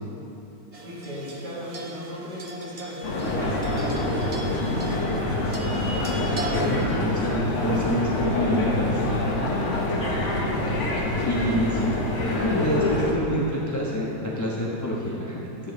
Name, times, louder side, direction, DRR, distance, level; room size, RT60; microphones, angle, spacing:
sound 1, 0.7-6.9, right 2 dB, 50° right, 0.4 m, -40 dB
voice 1, 0.8-4.9 5.3-6.8, equal, 75° right, -8 dB, 2.7 m, -37 dB
sound 2, 3.0-13.1, left 1 dB, 50° left, 1.3 m, -26 dB
voice 2, 6.3-9.0 11.3-12.0 12.3-15.7, equal, 20° left, -5 dB, 0.5 m, -27 dB
11.0 x 3.8 x 6.8 m, 3.0 s
omnidirectional pair, 1.8 m